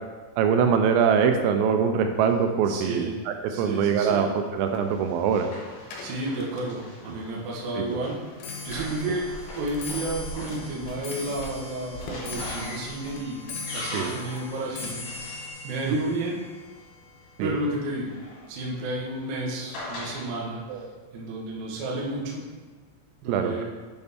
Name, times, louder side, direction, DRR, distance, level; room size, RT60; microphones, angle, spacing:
voice 1, 0.4-5.5 7.8-8.0 13.9-14.2 15.9-16.0 17.4-17.6 20.7-20.8 23.3-23.6, right 7 dB, 85° right, 6 dB, 3.2 m, -23 dB
voice 2, 2.7-3.2 3.5-4.3 6.0-8.2 8.6-15.0 15.6-16.4 17.4-18.1 18.5-20.8 21.1-22.5 23.2-23.6, right 2 dB, 70° right, -4 dB, 2.3 m, -31 dB
Run, 4.2-16.8 17.8-20.3, left 1 dB, 55° left, 3.8 m, -42 dB
Clock, 5.9-19.2 19.5-20.0 20.8-20.9 21.2-21.6 21.8-21.9, left 4 dB, 90° left, 3.8 m, -41 dB
sound 1, 8.7-15.4, equal, 75° left, 2.5 m, -43 dB
7.9 x 6.5 x 3.5 m, 1.4 s
omnidirectional pair, 5.9 m